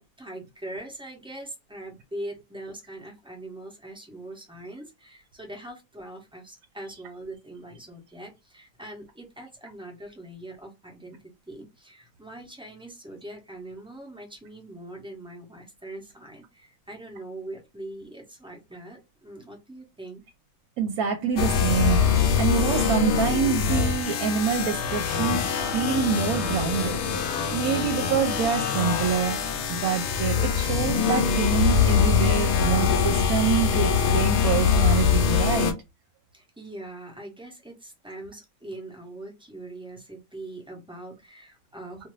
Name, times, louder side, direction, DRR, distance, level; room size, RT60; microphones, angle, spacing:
voice 1, 0.0-20.2 36.3-42.1, right 1 dB, 5° right, 0.5 m, -42 dB
voice 2, 20.8-22.0 22.4-27.2 27.5-29.4 29.7-35.7, right 7 dB, 75° right, 1.0 m, -26 dB
sound 1, 21.4-35.7, left 6 dB, 65° left, 0.7 m, -23 dB
2.6 x 2.5 x 3.1 m
omnidirectional pair, 1.5 m